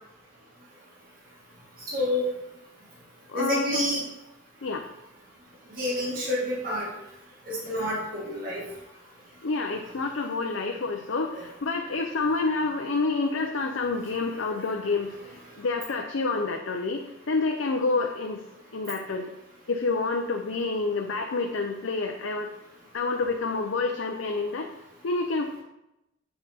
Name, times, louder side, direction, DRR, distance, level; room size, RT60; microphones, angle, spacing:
voice 1, 1.9-2.2 3.3-4.0 5.7-6.9 7.5-8.6 11.3-11.4, left 1 dB, 50° right, -6 dB, 2.0 m, -28 dB
voice 2, 3.3-3.9 4.6-4.8 9.4-18.4 18.7-19.3 19.7-22.5 22.9-24.7 25.0-25.6, left 3 dB, 85° left, 3 dB, 0.6 m, -28 dB
7.5 x 4.4 x 4.2 m, 0.89 s
head